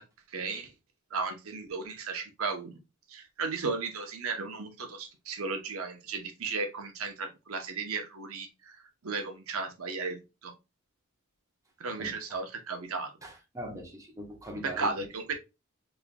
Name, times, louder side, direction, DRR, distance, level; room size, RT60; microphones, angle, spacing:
voice 1, 0.3-0.7 1.1-2.7 3.1-8.7 9.0-10.2 10.4-10.5 11.8-13.1 14.6-15.3, right 4 dB, 85° right, 0.8 m, -35 dB
voice 2, 12.0-12.4 13.2-15.1, equal, 15° right, 1.0 m, -41 dB
4.3 x 3.4 x 2.2 m
head